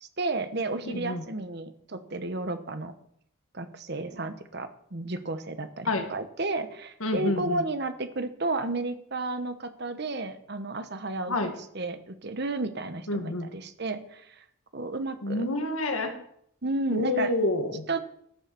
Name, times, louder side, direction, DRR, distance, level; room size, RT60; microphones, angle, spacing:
voice 1, 0.0-2.9 3.5-14.4 14.7-15.5 16.6-17.3 17.9-18.0, right 2 dB, 50° right, 10 dB, 1.1 m, -32 dB
voice 2, 0.8-1.2 5.8-6.1 7.0-7.6 11.3-11.5 13.1-13.5 15.2-16.1 16.9-17.8, left 2 dB, 80° left, 5 dB, 1.9 m, -28 dB
13.0 x 6.5 x 7.0 m, 0.70 s
head